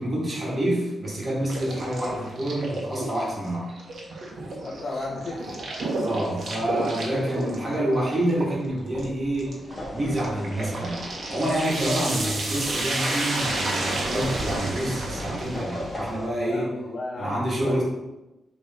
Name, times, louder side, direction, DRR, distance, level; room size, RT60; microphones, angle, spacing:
voice 1, 0.0-3.7 6.0-9.6 9.9-16.7 17.2-17.8, right 1 dB, 30° right, -4 dB, 1.8 m, -27 dB
sound 1, 1.5-16.0, right 2 dB, 55° right, 1.3 m, -31 dB
voice 2, 4.6-5.6 16.4-17.8, left 2 dB, 50° left, -3 dB, 0.8 m, -34 dB
sound 2, 9.7-16.3, left 1 dB, 10° left, 1.4 m, -38 dB
6.7 x 3.4 x 4.2 m, 1.0 s
wide cardioid pair, 175°, 0 cm